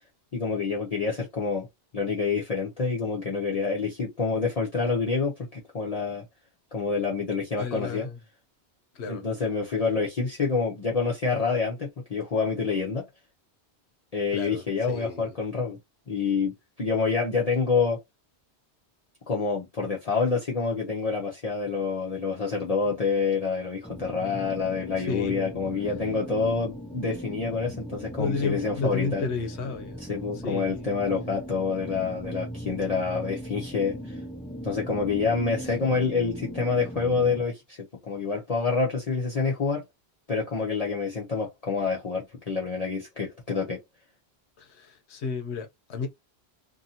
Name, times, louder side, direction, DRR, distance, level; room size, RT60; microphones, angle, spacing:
voice 1, 0.3-1.7 1.9-6.2 6.7-8.1 9.0-13.1 14.1-15.8 16.1-18.0 19.3-29.2 30.1-34.2 34.6-37.8 38.0-39.8 40.3-43.8, left 4 dB, 40° left, 0.7 m, -27 dB
voice 2, 7.6-8.2 8.9-9.2 14.3-15.3 25.0-25.5 28.2-30.0 30.4-30.9 44.6-46.1, left 4 dB, 85° left, 1.0 m, -32 dB
sound 1, 23.8-37.4, equal, 5° left, 0.5 m, -39 dB
2.7 x 2.6 x 2.7 m
omnidirectional pair, 1.1 m